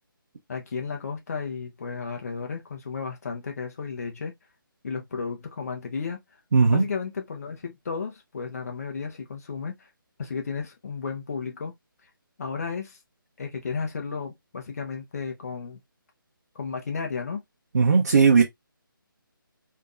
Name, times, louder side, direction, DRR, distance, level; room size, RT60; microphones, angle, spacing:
voice 1, 0.5-4.3 4.8-6.2 6.7-9.9 10.2-11.7 12.4-13.0 13.4-15.8 16.5-17.4, left 5 dB, 45° left, 1.0 m, -33 dB
voice 2, 6.5-6.8 17.7-18.4, right 5 dB, 45° right, 0.7 m, -17 dB
3.6 x 2.7 x 2.4 m
figure-of-eight pair, 150°, 12 cm